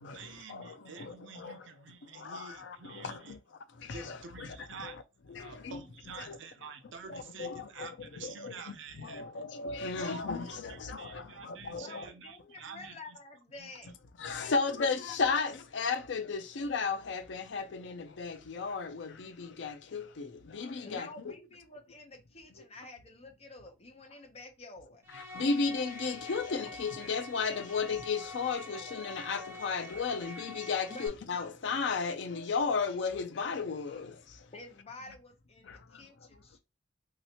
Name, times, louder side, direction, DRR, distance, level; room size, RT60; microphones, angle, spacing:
voice 1, 0.1-3.4 3.9-5.0 5.3-9.4 10.0-13.2 13.6-13.7, right 5 dB, 70° right, 0.6 m, -48 dB
voice 2, 1.0-1.6 2.2-3.2 3.9-4.5 4.8-4.9 5.3-5.8 6.2-6.4 7.1-7.9 8.2-8.5 9.0-12.0 14.2-21.3 25.4-34.1, left 4 dB, 65° left, 0.4 m, -34 dB
voice 3, 11.8-13.9 14.4-14.9 15.3-15.4 20.8-25.0 30.9-31.1 34.5-36.6, left 2 dB, 30° left, 0.8 m, -49 dB
sound 1, 25.0-31.1, left 1 dB, 10° right, 0.8 m, -46 dB
3.1 x 2.8 x 2.9 m
head